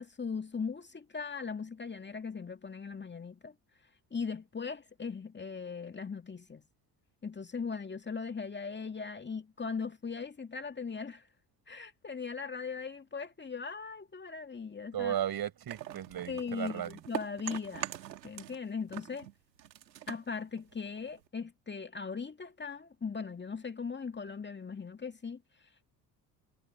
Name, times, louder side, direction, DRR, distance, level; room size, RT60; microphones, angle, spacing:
voice 1, 0.0-3.5 4.1-6.6 7.2-11.3 11.7-15.1 16.3-17.9 18.2-19.3 20.1-25.8, left 5 dB, 20° left, 2.3 m, -39 dB
voice 2, 14.9-17.0, right 10 dB, 45° right, 7.7 m, -35 dB
sound 1, 15.7-18.6 18.9-21.3, right 12 dB, 80° right, 2.7 m, -43 dB
figure-of-eight pair, 55°, 50 cm